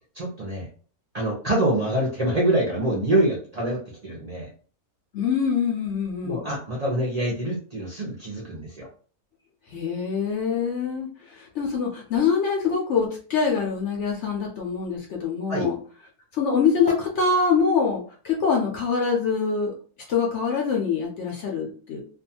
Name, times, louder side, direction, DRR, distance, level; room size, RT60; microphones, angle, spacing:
voice 1, 0.1-0.7 1.1-4.5 6.2-8.9 15.5-15.7, right 1 dB, 55° right, -4 dB, 0.4 m, -25 dB
voice 2, 5.1-6.5 9.7-15.7 16.3-19.7 20.1-22.0, left 5 dB, 60° left, -1 dB, 0.8 m, -24 dB
2.5 x 2.3 x 2.7 m, 0.41 s
omnidirectional pair, 1.6 m